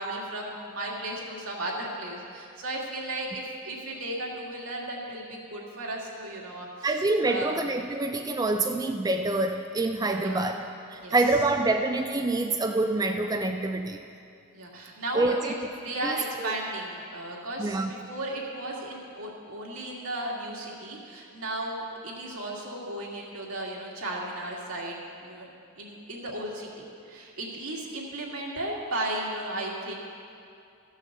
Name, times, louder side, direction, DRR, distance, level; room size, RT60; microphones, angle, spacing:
voice 1, 0.0-6.7 7.3-7.5 10.1-10.5 11.0-11.2 14.5-25.0 25.2-25.5 25.8-26.7 27.1-29.9, right 1 dB, 85° right, -3 dB, 2.1 m, -35 dB
voice 2, 6.8-10.6 10.9-14.0 15.1-15.4 16.0-16.5 17.6-17.9, right 2 dB, 15° right, 4 dB, 0.3 m, -26 dB
14.0 x 6.4 x 6.7 m, 2.5 s
head